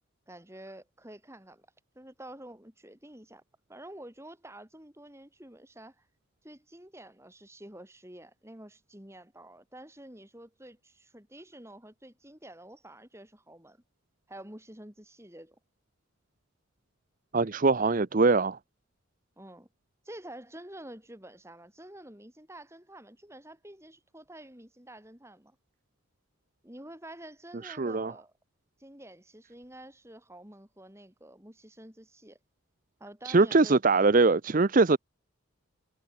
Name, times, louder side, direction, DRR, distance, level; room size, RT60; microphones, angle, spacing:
voice 1, 0.3-1.7 2.0-3.4 3.7-6.0 6.4-13.8 14.3-15.6 17.7-17.9 19.4-19.7 20.0-25.6 26.6-28.3 28.8-32.4 33.0-33.8, right 1 dB, 10° right, 3.8 m, -49 dB
voice 2, 17.3-18.6 27.6-28.1 33.3-35.0, right 3 dB, 40° right, 0.6 m, -22 dB
head